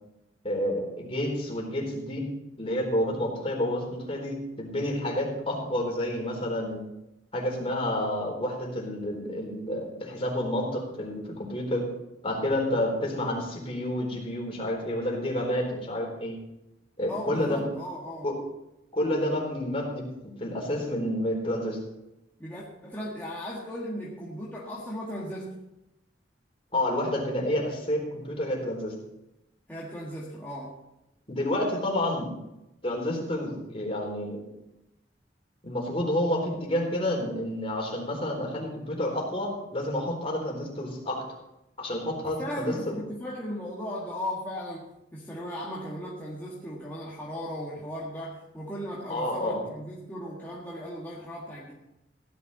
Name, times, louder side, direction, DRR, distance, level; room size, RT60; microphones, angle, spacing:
voice 1, 0.4-2.3 2.6-6.9 7.3-11.9 12.2-16.4 17.0-17.6 18.2-18.3 18.9-21.8 26.7-28.9 31.3-32.3 32.8-34.4 35.6-41.3 41.8-42.9 49.1-49.6, left 1 dB, 30° left, -1 dB, 4.1 m, -29 dB
voice 2, 17.1-18.3 22.4-25.6 29.7-30.8 42.2-51.7, equal, 10° left, -6 dB, 1.8 m, -37 dB
16.5 x 11.0 x 4.2 m, 0.89 s
head